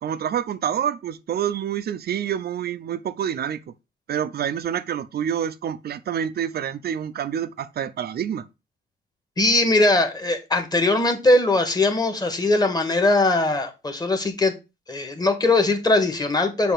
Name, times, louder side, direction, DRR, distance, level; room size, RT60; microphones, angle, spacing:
voice 1, 0.0-3.7 4.1-8.5, right 9 dB, 50° right, 0.6 m, -27 dB
voice 2, 9.4-14.5 14.9-16.7, left 2 dB, 20° left, 1.6 m, -20 dB
6.9 x 2.8 x 5.7 m
cardioid pair, 90°, 20 cm